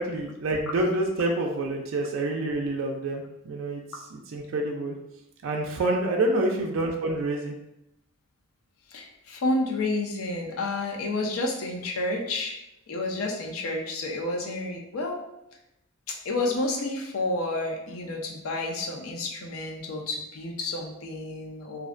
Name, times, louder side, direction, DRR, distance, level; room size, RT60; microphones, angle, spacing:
voice 1, 0.0-3.8 4.1-4.9 5.4-7.6, right 2 dB, 65° right, 1 dB, 0.3 m, -27 dB
voice 2, 6.3-6.7 8.9-12.6 12.9-15.2 16.1-21.9, left 2 dB, 80° left, 0 dB, 0.5 m, -30 dB
2.5 x 2.1 x 2.4 m, 0.86 s
head